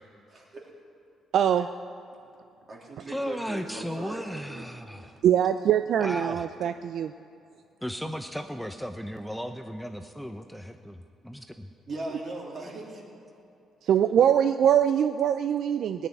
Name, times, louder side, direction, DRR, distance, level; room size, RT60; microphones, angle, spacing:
voice 1, 0.3-0.7 2.7-4.7 5.0-5.1 11.9-13.0, right 2 dB, 45° right, -1 dB, 3.3 m, -39 dB
voice 2, 1.3-1.7 5.2-7.1 13.8-16.1, right 9 dB, 70° right, 10 dB, 0.4 m, -23 dB
voice 3, 3.1-5.1 6.0-6.5 7.8-11.7, equal, ahead, 6 dB, 0.7 m, -35 dB
16.5 x 8.3 x 9.8 m, 2.5 s
cardioid pair, 90°, 0 cm